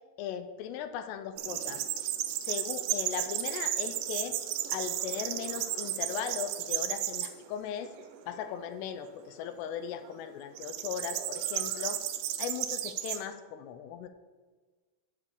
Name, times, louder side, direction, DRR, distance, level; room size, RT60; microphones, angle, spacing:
voice 1, 0.2-2.1 2.5-4.4 4.7-7.9 8.3-12.0 12.4-14.1, left 8 dB, 80° left, 9 dB, 2.6 m, -38 dB
sound 1, 1.4-7.3 7.8-8.4 10.5-13.2, right 12 dB, 80° right, 2.8 m, -33 dB
9.6 x 5.3 x 6.7 m, 1.4 s
omnidirectional pair, 5.1 m